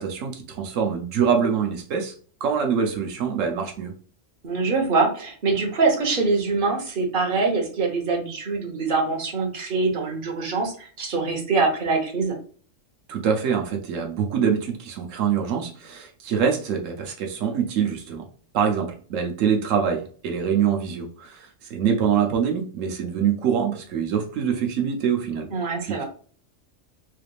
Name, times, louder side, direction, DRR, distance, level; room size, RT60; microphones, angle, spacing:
voice 1, 0.0-2.1 2.4-3.9 13.1-18.3 18.5-25.5 25.9-26.0, right 7 dB, 85° right, 2 dB, 1.1 m, -24 dB
voice 2, 4.4-12.3 25.5-26.0, right 3 dB, 45° right, 1 dB, 1.2 m, -24 dB
3.9 x 3.4 x 2.4 m, 0.43 s
omnidirectional pair, 1.3 m